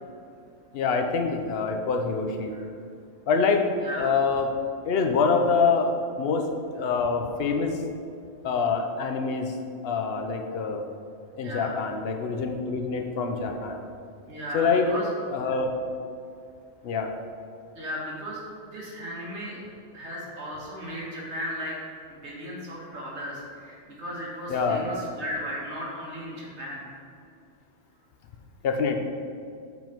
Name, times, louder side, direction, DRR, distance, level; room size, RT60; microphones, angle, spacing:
voice 1, 0.7-2.5 3.3-3.7 4.0-4.5 4.8-5.9 6.2-6.5 6.7-7.8 8.4-9.5 9.8-10.8 11.4-13.8 14.5-14.9 15.3-15.7 16.8-17.1 24.5-24.9 28.6-29.0, left 5 dB, 60° left, 3 dB, 0.8 m, -25 dB
voice 2, 3.8-4.1 11.4-11.8 14.3-15.1 17.7-19.6 19.9-21.8 22.1-27.0, equal, 60° right, -5 dB, 1.8 m, -36 dB
7.2 x 3.9 x 4.4 m, 2.4 s
omnidirectional pair, 1.3 m